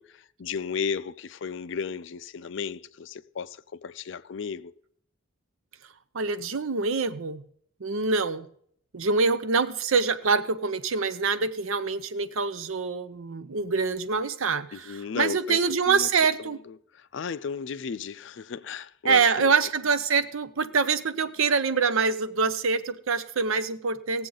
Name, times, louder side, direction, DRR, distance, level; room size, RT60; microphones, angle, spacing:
voice 1, 0.0-4.7 14.7-16.1 16.4-19.5, left 6 dB, 55° left, 0.4 m, -35 dB
voice 2, 6.1-7.4 7.8-8.5 8.9-16.6 19.0-24.3, right 5 dB, 70° right, 0.7 m, -25 dB
18.0 x 7.4 x 3.9 m
head